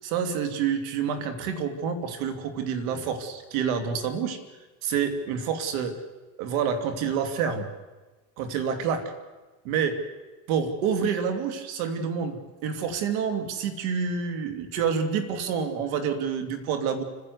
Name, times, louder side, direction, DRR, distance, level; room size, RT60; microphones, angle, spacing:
voice 1, 0.0-4.4 4.8-6.0 6.4-7.7 8.4-9.1 9.6-10.0 10.5-17.0, right 6 dB, 80° right, 8 dB, 2.7 m, -28 dB
30.0 x 10.5 x 8.1 m, 1.2 s
supercardioid pair, 105°, 40 cm